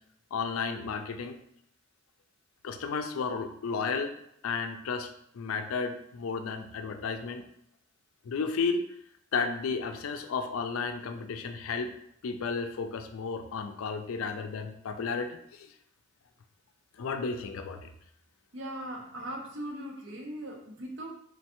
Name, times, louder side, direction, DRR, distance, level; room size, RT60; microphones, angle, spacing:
voice 1, 0.3-1.4 2.6-4.1 4.4-5.1 5.3-7.4 8.3-8.8 9.3-11.9 12.2-15.7 17.0-17.9, left 5 dB, 80° left, 7 dB, 0.4 m, -33 dB
voice 2, 18.5-21.1, right 1 dB, 60° right, 1 dB, 0.7 m, -39 dB
3.9 x 3.2 x 2.9 m, 0.75 s
head